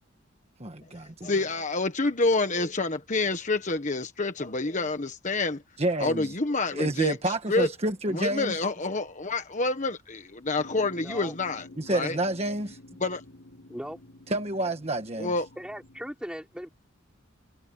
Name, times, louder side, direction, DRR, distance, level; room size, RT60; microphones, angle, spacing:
voice 1, 0.6-1.3 5.8-6.3 6.7-8.6 11.8-12.8 14.3-15.3, right 1 dB, 30° right, 1.3 m, -29 dB
voice 2, 1.2-5.6 6.0-7.7 8.1-12.2 13.0-13.2 15.2-15.5, left 3 dB, 35° left, 1.4 m, -28 dB
sound 1, 10.6-16.1, left 1 dB, 60° left, 4.2 m, -49 dB
voice 3, 11.0-11.3 13.7-14.0 15.6-16.7, equal, 5° right, 4.7 m, -38 dB
head